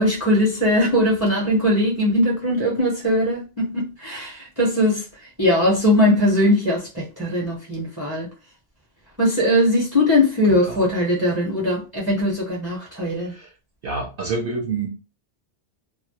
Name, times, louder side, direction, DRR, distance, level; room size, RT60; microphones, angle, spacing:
voice 1, 0.0-5.0 5.4-8.3 9.2-13.3, left 1 dB, 25° right, 0.6 m, -20 dB
voice 2, 10.5-10.9 13.2-13.5 13.8-14.9, right 4 dB, 65° right, 0.7 m, -28 dB
2.1 x 2.0 x 2.8 m
omnidirectional pair, 1.1 m